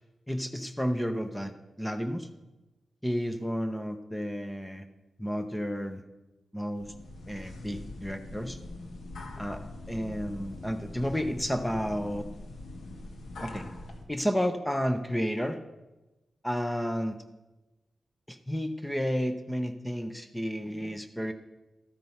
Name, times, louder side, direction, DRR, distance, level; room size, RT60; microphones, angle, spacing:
voice 1, 0.3-2.3 3.0-4.9 5.2-6.0 6.5-6.9 7.3-8.6 9.4-9.6 9.9-12.3 13.4-13.6 14.1-15.6 16.4-17.2 18.3-21.3, equal, 5° left, 7 dB, 0.5 m, -31 dB
sound 1, 6.7-14.0, left 2 dB, 85° left, 1.3 m, -43 dB
12.5 x 4.5 x 5.5 m, 1.1 s
wide cardioid pair, 160°, 0 cm